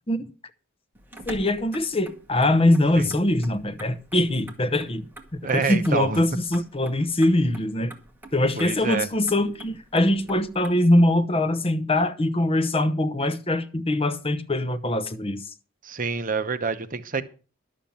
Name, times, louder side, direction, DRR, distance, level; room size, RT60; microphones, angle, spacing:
Motor vehicle (road), 0.9-10.7, right 2 dB, 10° right, 1.9 m, -46 dB
voice 1, 1.3-5.0 5.3-7.9 8.3-15.4, left 1 dB, 25° left, 0.9 m, -22 dB
voice 2, 5.4-6.2 8.6-9.1 15.8-17.2, right 4 dB, 40° right, 0.9 m, -27 dB
12.0 x 7.3 x 7.2 m
head